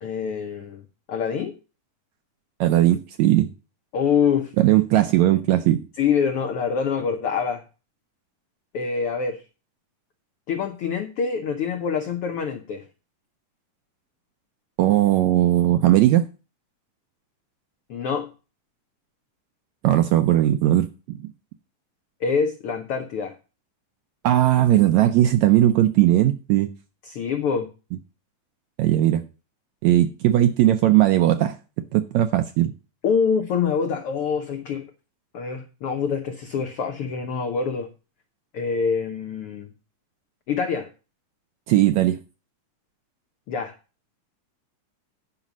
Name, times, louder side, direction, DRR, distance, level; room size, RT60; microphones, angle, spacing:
voice 1, 0.0-0.8 1.1-1.5 3.9-4.5 6.0-7.6 8.7-9.4 10.5-12.8 17.9-18.3 22.2-23.3 27.0-27.7 33.0-34.8 35.3-37.9 38.5-39.7 40.5-40.9 43.5-43.7, left 6 dB, 85° left, 1.2 m, -25 dB
voice 2, 2.6-3.5 4.6-5.9 14.8-16.3 19.8-21.2 24.2-26.7 28.8-29.3 29.8-31.6 31.9-32.7 41.7-42.2, right 13 dB, 80° right, 1.7 m, -18 dB
9.8 x 5.3 x 6.0 m
omnidirectional pair, 3.7 m